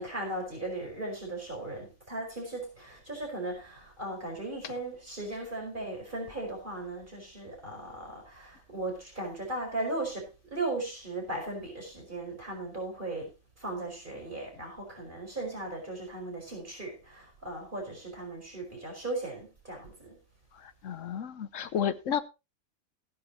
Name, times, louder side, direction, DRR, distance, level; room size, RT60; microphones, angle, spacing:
voice 1, 0.0-20.2, right 2 dB, 35° right, 5.4 m, -37 dB
voice 2, 20.8-22.2, left 8 dB, 60° left, 1.2 m, -31 dB
15.0 x 11.0 x 3.0 m
omnidirectional pair, 1.5 m